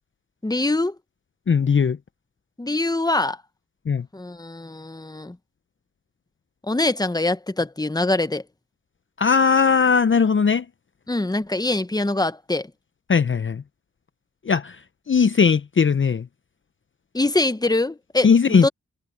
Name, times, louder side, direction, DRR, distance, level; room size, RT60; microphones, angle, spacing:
voice 1, 0.4-0.9 2.6-3.4 4.1-5.4 6.6-8.4 11.1-12.7 17.1-18.7, left 2 dB, 15° left, 1.1 m, -24 dB
voice 2, 1.5-2.0 3.9-4.1 9.2-10.7 13.1-13.6 14.4-16.3 18.2-18.7, left 5 dB, 40° left, 0.7 m, -19 dB
cardioid pair, 50°, 30 cm